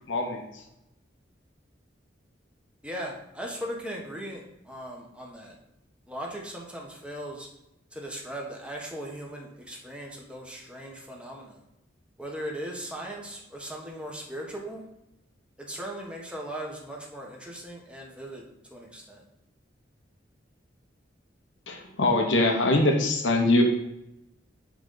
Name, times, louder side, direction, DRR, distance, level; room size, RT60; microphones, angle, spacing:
voice 1, 0.1-0.6 21.7-23.6, left 2 dB, 85° left, 2 dB, 1.1 m, -23 dB
voice 2, 2.8-5.6 6.1-7.5 7.9-11.6 12.2-14.9 15.6-19.2, right 1 dB, 5° right, -1 dB, 1.4 m, -38 dB
10.0 x 4.0 x 4.0 m, 0.87 s
head